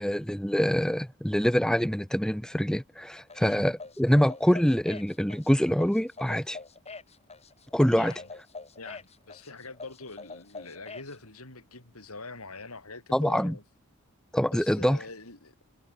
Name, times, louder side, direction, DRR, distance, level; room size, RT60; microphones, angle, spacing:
voice 1, 0.0-6.6 7.7-8.1 13.1-13.5 14.3-15.0, equal, 5° left, 0.8 m, -25 dB
sound 1, 3.3-11.1, left 3 dB, 30° left, 7.4 m, -44 dB
voice 2, 3.4-3.7 7.9-8.3 8.8-13.6 14.5-15.5, left 3 dB, 75° left, 7.2 m, -44 dB
head